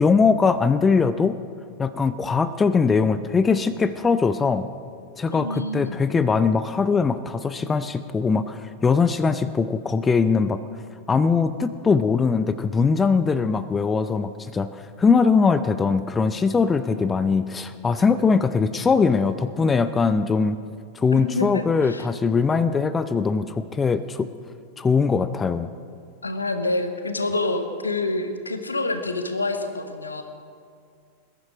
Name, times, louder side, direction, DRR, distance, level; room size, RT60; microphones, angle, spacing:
voice 1, 0.0-1.4 1.8-4.7 5.2-10.6 11.1-20.6 21.0-24.3 24.8-25.7, left 5 dB, 15° left, 13 dB, 0.5 m, -21 dB
voice 2, 5.3-6.0 21.1-22.1 26.2-30.2, left 2 dB, 80° left, 8 dB, 1.1 m, -27 dB
20.5 x 10.5 x 4.9 m, 2.3 s
figure-of-eight pair, 90°, 0 cm